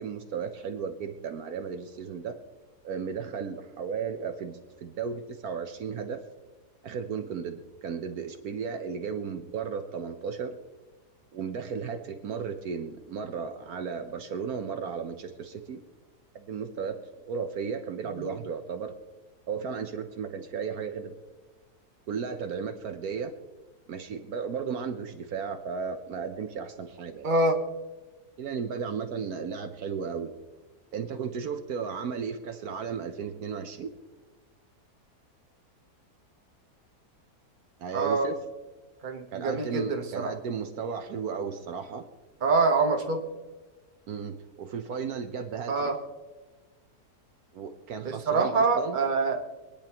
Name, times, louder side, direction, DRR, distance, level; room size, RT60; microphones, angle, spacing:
voice 1, 0.0-2.4 2.8-6.2 6.8-10.5 11.3-15.8 16.3-17.0 17.3-18.9 19.5-21.1 22.1-23.3 23.9-27.3 28.4-30.3 30.9-33.9 37.8-38.4 39.3-42.1 44.1-45.9 47.5-49.0, right 6 dB, 65° right, 7 dB, 1.3 m, -34 dB
voice 2, 27.2-27.6 37.9-38.3 39.0-40.3 42.4-43.2 45.7-46.0 48.0-49.4, right 3 dB, 35° right, 4 dB, 1.2 m, -25 dB
25.0 x 10.0 x 2.9 m, 1.3 s
omnidirectional pair, 1.7 m